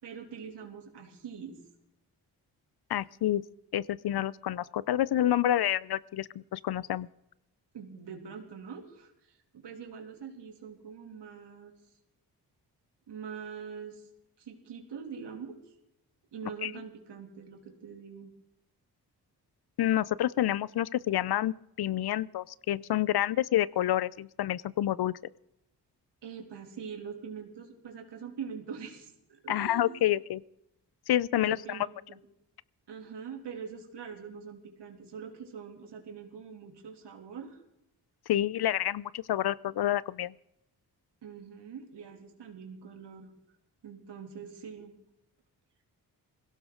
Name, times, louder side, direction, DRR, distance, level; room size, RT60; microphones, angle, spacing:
voice 1, 0.0-1.6 7.7-11.7 13.1-14.1 14.4-15.6 16.3-18.3 26.2-30.1 31.4-32.2 32.9-37.6 41.2-43.3 43.8-44.9, right 6 dB, 75° right, 3 dB, 3.0 m, -43 dB
voice 2, 2.9-3.4 3.7-7.1 16.6-16.7 19.8-25.1 29.5-30.4 31.1-31.6 38.3-40.3, left 12 dB, 65° left, 21 dB, 0.6 m, -28 dB
21.5 x 17.0 x 3.9 m, 0.84 s
supercardioid pair, 50°, 42 cm